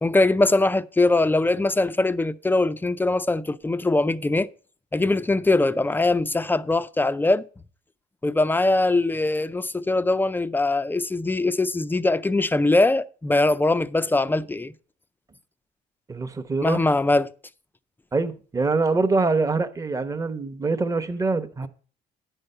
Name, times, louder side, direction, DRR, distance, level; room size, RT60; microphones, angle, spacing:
voice 1, 0.0-4.5 4.9-7.5 8.2-14.7 16.6-17.3, left 2 dB, 10° left, 0.4 m, -22 dB
voice 2, 16.1-16.8 18.1-21.7, right 3 dB, 20° right, 0.9 m, -24 dB
9.8 x 5.5 x 6.6 m
cardioid pair, 110°, 17 cm